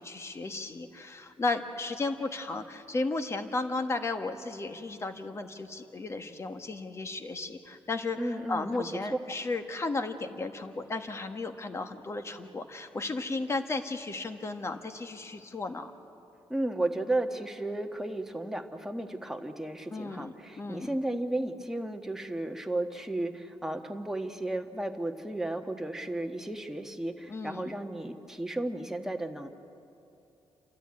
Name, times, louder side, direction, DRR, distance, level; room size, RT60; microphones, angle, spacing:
voice 1, 0.0-15.9 19.9-20.9 27.3-27.7, left 3 dB, 30° left, 7 dB, 1.5 m, -34 dB
voice 2, 8.2-8.9 16.5-29.5, right 1 dB, 5° right, 4 dB, 1.4 m, -34 dB
28.5 x 13.5 x 9.6 m, 2.9 s
cardioid pair, 115°, 9 cm